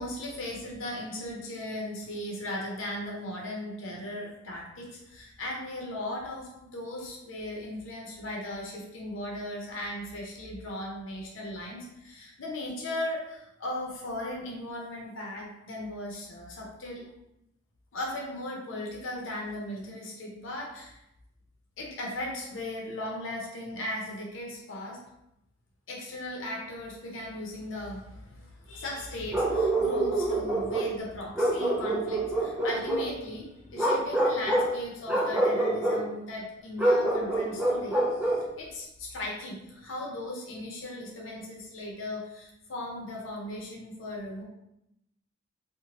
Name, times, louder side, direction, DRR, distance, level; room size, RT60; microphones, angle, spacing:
voice 1, 0.0-17.0 17.9-21.0 21.8-25.0 25.9-38.0 38.6-44.4, left 1 dB, 70° left, -2 dB, 0.6 m, -37 dB
Bark, 29.3-30.9 31.4-33.1 33.7-34.7 35.1-36.0 36.8-38.5, right 1 dB, 5° right, 0.4 m, -26 dB
2.8 x 2.1 x 2.9 m, 0.84 s
head